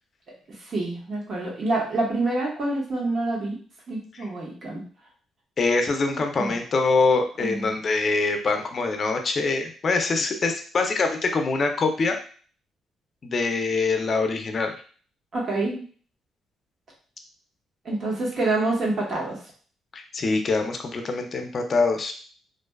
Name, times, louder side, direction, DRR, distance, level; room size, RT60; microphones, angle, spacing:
voice 1, 0.6-3.6 3.9-4.8 6.4-6.6 7.4-7.7 15.3-15.8 17.8-19.4, right 2 dB, 50° right, -3 dB, 1.1 m, -27 dB
voice 2, 5.6-12.2 13.2-14.7 19.9-22.1, left 3 dB, 45° left, 5 dB, 0.5 m, -24 dB
2.5 x 2.3 x 2.2 m, 0.42 s
cardioid pair, 90°, 0 cm